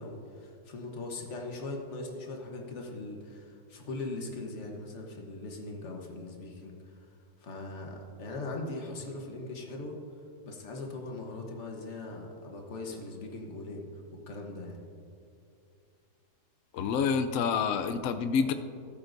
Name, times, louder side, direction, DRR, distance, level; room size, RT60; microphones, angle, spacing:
voice 1, 0.0-7.1 7.4-10.0 10.4-14.8, left 2 dB, 45° left, 1 dB, 1.4 m, -40 dB
voice 2, 16.7-18.5, left 6 dB, 75° left, 9 dB, 0.7 m, -28 dB
14.0 x 12.5 x 2.6 m, 2.5 s
omnidirectional pair, 1.9 m